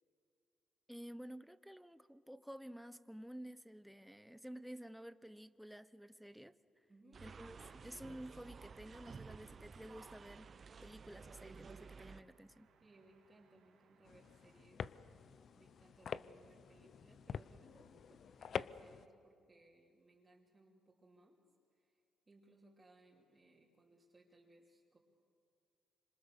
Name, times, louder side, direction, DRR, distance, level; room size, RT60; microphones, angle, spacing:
voice 1, 0.9-6.5 7.2-10.5 10.8-12.7, equal, ahead, 0.8 m, -52 dB
voice 2, 6.9-7.3 12.8-15.3 15.5-21.4 21.7-22.0 22.3-25.0, right 2 dB, 25° right, 3.2 m, -66 dB
sound 1, 7.1-12.2, right 5 dB, 40° right, 0.9 m, -54 dB
sound 2, 8.9-14.6, right 6 dB, 80° right, 3.4 m, -72 dB
sound 3, 14.1-19.1, left 7 dB, 55° left, 0.6 m, -47 dB
27.0 x 25.5 x 6.8 m
cardioid pair, 90°, 0 cm